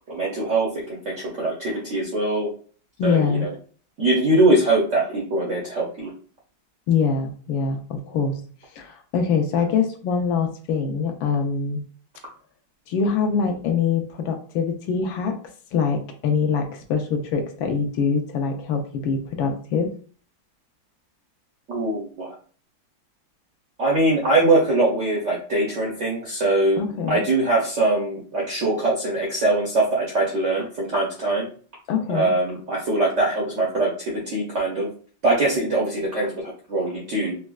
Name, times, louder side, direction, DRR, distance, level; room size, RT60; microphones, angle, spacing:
voice 1, 0.1-2.5 3.0-3.5 4.0-6.1 21.7-22.3 23.8-31.5 32.1-34.9 35.2-37.4, right 2 dB, 70° right, -4 dB, 0.7 m, -22 dB
voice 2, 3.0-3.5 6.9-8.4 8.7-11.8 12.9-15.4 15.7-19.9 26.8-27.2 31.9-32.3, left 5 dB, 75° left, 5 dB, 1.3 m, -24 dB
4.2 x 2.1 x 2.3 m, 0.43 s
omnidirectional pair, 2.2 m